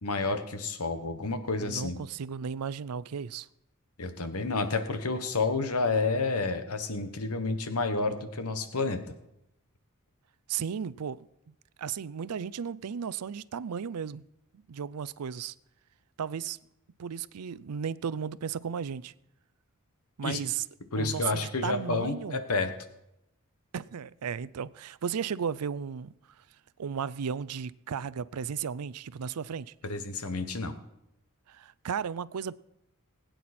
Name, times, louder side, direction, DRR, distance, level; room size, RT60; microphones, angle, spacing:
voice 1, 0.0-2.0 4.0-9.0 20.2-20.4 20.9-22.7 29.8-30.7, left 3 dB, 75° left, 1.2 m, -30 dB
voice 2, 1.6-3.5 10.5-11.3 11.8-14.3 14.5-15.5 16.2-16.6 17.0-19.1 20.2-20.6 20.9-22.4 23.7-26.1 26.8-29.7 31.5-32.5, right 7 dB, 85° right, 0.5 m, -35 dB
20.5 x 9.2 x 4.3 m
head